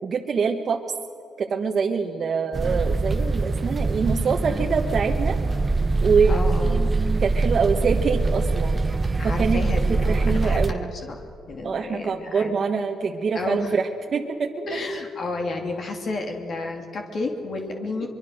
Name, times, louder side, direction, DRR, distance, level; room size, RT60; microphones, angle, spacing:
voice 1, 0.0-0.8 1.4-5.4 6.0-6.4 7.2-8.8 9.2-9.6 9.9-10.9 11.6-14.7, right 5 dB, 50° right, 1 dB, 1.4 m, -24 dB
sound 1, 2.5-10.7, right 3 dB, 30° right, 0.9 m, -23 dB
voice 2, 6.3-6.8 9.2-12.5 13.3-13.7 14.7-18.1, left 3 dB, 50° left, 3 dB, 2.8 m, -31 dB
24.0 x 23.0 x 6.6 m, 2.6 s
cardioid pair, 90°, 0 cm